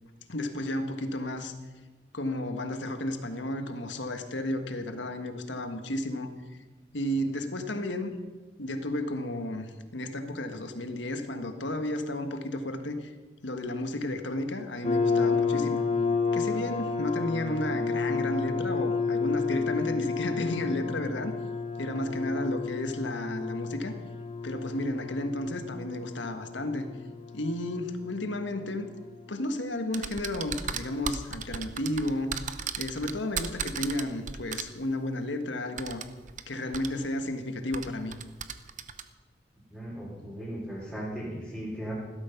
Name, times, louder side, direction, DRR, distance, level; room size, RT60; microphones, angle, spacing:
voice 1, 0.3-1.5 2.1-6.3 6.9-8.1 8.6-13.1 13.4-15.9 16.3-21.3 21.8-23.9 24.4-26.9 27.3-28.9 29.3-32.3 32.8-36.0 36.5-38.2, left 1 dB, 85° left, 7 dB, 1.5 m, -32 dB
sound 1, 14.8-29.3, left 4 dB, 35° left, 0.7 m, -31 dB
sound 2, 29.9-34.6 35.8-36.4 36.7-36.9 37.7-39.0, right 7 dB, 45° right, 0.8 m, -35 dB
voice 2, 39.7-41.9, equal, 5° right, -8 dB, 3.6 m, -37 dB
16.0 x 13.0 x 5.9 m, 1.3 s
head